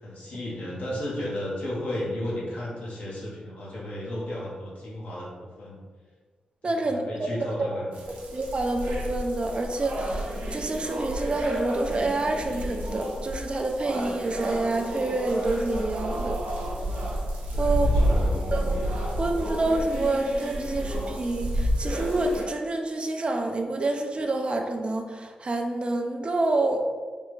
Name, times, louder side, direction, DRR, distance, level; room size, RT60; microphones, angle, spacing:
voice 1, 0.0-5.8 6.6-7.9 17.5-18.3, left 1 dB, 75° left, -6 dB, 1.0 m, -34 dB
voice 2, 6.6-7.8 8.3-16.4 17.6-18.1 18.5-18.8 19.2-26.8, right 2 dB, 40° right, 4 dB, 0.4 m, -28 dB
sound 1, 7.9-22.4, equal, 80° right, 0.7 m, -30 dB
3.3 x 2.1 x 3.1 m, 1.5 s
cardioid pair, 50°, 3 cm